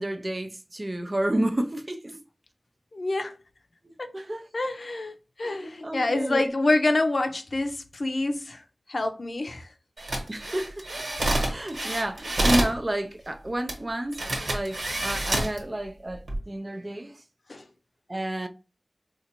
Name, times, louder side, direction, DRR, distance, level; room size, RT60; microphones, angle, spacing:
voice 1, 0.0-2.2 3.8-4.5 5.4-6.5 10.3-10.8 11.5-14.2 14.5-17.2 18.1-18.5, right 1 dB, 35° right, 0.4 m, -30 dB
voice 2, 2.9-3.4 4.0-4.1 4.5-8.6 8.9-9.7 17.5-17.6, left 2 dB, 60° left, 0.6 m, -27 dB
sound 1, 10.0-12.8 13.7-13.8 14.1-15.6 16.1-16.4, right 1 dB, 85° right, 1.3 m, -27 dB
4.3 x 2.4 x 2.9 m
wide cardioid pair, 70°, 0 cm